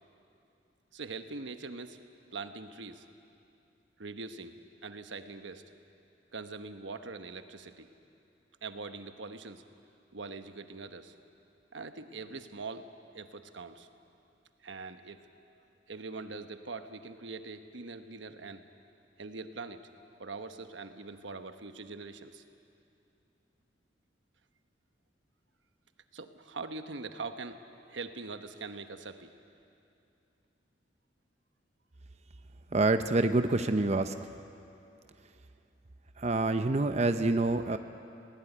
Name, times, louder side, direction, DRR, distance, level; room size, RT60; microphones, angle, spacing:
voice 1, 0.9-2.0 2.3-3.0 4.0-4.6 4.8-5.6 6.3-7.9 8.6-9.6 10.1-11.1 11.7-12.9 13.1-13.9 14.6-18.6 19.2-19.9 20.2-22.4 26.1-27.6 27.9-29.3, right 3 dB, 85° right, 8 dB, 1.1 m, -42 dB
voice 2, 32.7-34.1 36.2-37.8, right 2 dB, 35° right, 9 dB, 0.7 m, -27 dB
20.0 x 18.0 x 10.0 m, 2.7 s
head